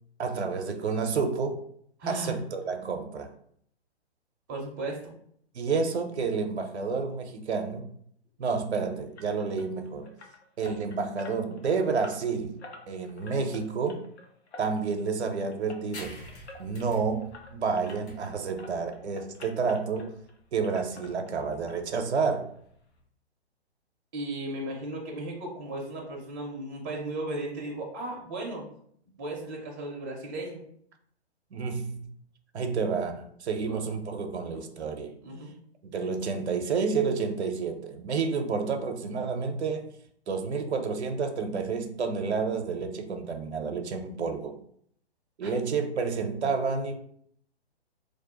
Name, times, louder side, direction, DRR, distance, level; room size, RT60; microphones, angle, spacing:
voice 1, 0.2-1.6 2.1-3.3 5.5-7.9 8.4-10.1 10.6-12.6 12.9-14.0 14.6-16.1 16.6-20.1 20.5-22.5 31.5-32.0 32.5-35.2 35.8-39.9 40.3-44.6 45.4-46.9, right 5 dB, 80° right, 6 dB, 0.5 m, -30 dB
voice 2, 2.0-2.3 4.5-5.0 24.1-28.7 29.2-30.6 33.7-34.6 35.2-35.5 45.4-45.5, right 2 dB, 20° right, -1 dB, 0.4 m, -36 dB
sound 1, 9.2-18.3 18.6-20.4 20.6-21.7 22.0-22.1 22.6-22.7 23.0-23.1, left 2 dB, 80° left, 0.6 m, -49 dB
sound 2, 15.9-23.1, left 1 dB, 55° left, 0.9 m, -50 dB
2.4 x 2.0 x 2.8 m, 0.65 s
figure-of-eight pair, 125°, 33 cm